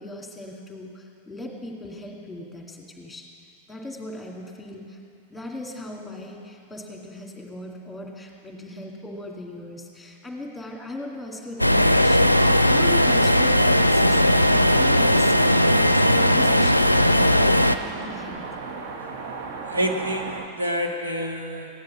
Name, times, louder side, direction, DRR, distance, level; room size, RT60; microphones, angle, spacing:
voice 1, 0.0-3.3 3.7-5.0 5.3-18.4, left 1 dB, 5° left, 0 dB, 2.1 m, -38 dB
sound 1, 11.6-17.7, equal, 90° left, 0.4 m, -18 dB
sound 2, 14.5-20.5, right 4 dB, 50° right, 1.2 m, -35 dB
voice 2, 19.7-21.7, equal, 80° right, 1 dB, 1.4 m, -27 dB
15.5 x 10.5 x 7.1 m, 2.6 s
figure-of-eight pair, 95°, 0 cm